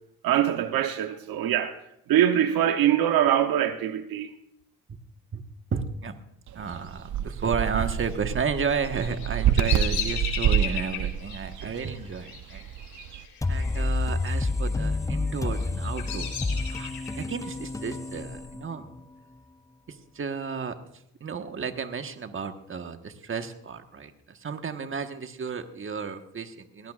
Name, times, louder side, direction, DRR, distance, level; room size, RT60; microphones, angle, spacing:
voice 1, 0.2-1.7 2.1-4.3, right 10 dB, 75° right, 1.0 m, -23 dB
voice 2, 5.7-6.2 6.5-12.6 13.5-16.9 17.2-18.9 19.9-20.7 21.2-26.9, right 5 dB, 35° right, 1.4 m, -32 dB
sound 1, 6.5-13.3, right 10 dB, 55° right, 0.7 m, -28 dB
Bird vocalization bird call bird song, 8.8-13.8 14.1-14.7 15.3-17.3, left 8 dB, 75° left, 3.8 m, -35 dB
sound 2, 13.4-19.0, left 2 dB, 10° left, 0.5 m, -29 dB
18.5 x 17.5 x 2.5 m
supercardioid pair, 75°, 36 cm